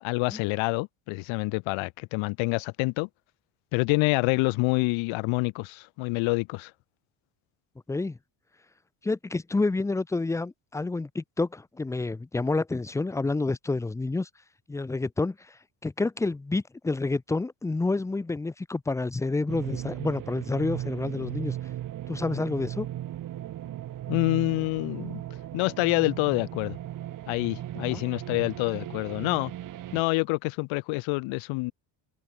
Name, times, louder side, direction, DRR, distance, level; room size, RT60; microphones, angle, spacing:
voice 1, 0.0-3.1 3.7-6.7 24.1-25.2 25.5-26.8 27.3-29.5 29.9-31.7, left 26 dB, 80° left, 0.5 m, -27 dB
voice 2, 7.9-8.2 9.0-14.3 14.7-21.6 22.1-22.9 27.8-28.0, left 3 dB, 5° left, 0.4 m, -29 dB
sound 1, 19.5-30.0, right 12 dB, 40° right, 1.3 m, -37 dB
cardioid pair, 160°, 47 cm